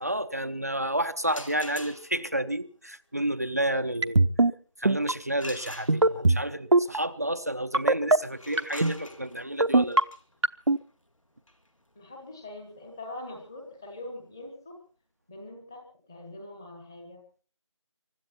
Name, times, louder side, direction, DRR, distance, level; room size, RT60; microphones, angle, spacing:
voice 1, 0.0-4.2 4.8-10.0, right 1 dB, 30° right, 9 dB, 0.7 m, -30 dB
sound 1, 1.2-2.4 5.4-6.4 8.3-13.9, left 1 dB, 80° left, 3.6 m, -46 dB
sound 2, 4.0-4.5 4.8-5.1 5.9-6.4 6.7-7.0 7.7-8.2 8.6-8.9 9.6-10.0 10.4-10.8, right 2 dB, 65° right, 0.9 m, -19 dB
voice 2, 11.9-14.8 15.3-17.4, left 2 dB, 10° left, 3 dB, 1.3 m, -43 dB
24.5 x 13.0 x 4.3 m, 0.41 s
figure-of-eight pair, 170°, 16 cm